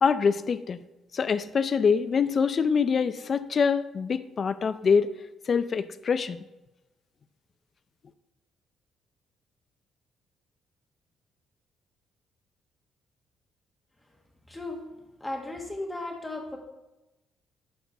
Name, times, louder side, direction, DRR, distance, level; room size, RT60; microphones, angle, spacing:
voice 1, 0.0-0.8 1.1-5.1 5.5-6.4, left 6 dB, 35° left, 13 dB, 0.4 m, -24 dB
voice 2, 14.5-14.8 15.2-16.6, left 2 dB, 10° left, 1 dB, 1.4 m, -35 dB
11.5 x 4.4 x 4.5 m, 0.99 s
cardioid pair, 150°, 0 cm